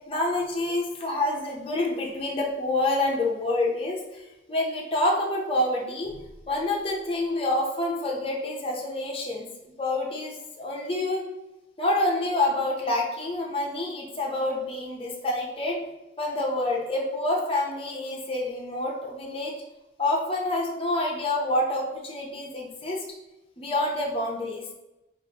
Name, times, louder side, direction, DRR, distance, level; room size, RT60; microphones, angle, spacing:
voice 1, 0.0-4.2 4.5-6.1 6.5-9.5 9.8-11.2 11.8-15.8 16.2-19.5 20.0-23.0 23.6-24.7, left 1 dB, 30° left, -1 dB, 0.7 m, -27 dB
5.3 x 2.5 x 2.9 m, 0.96 s
head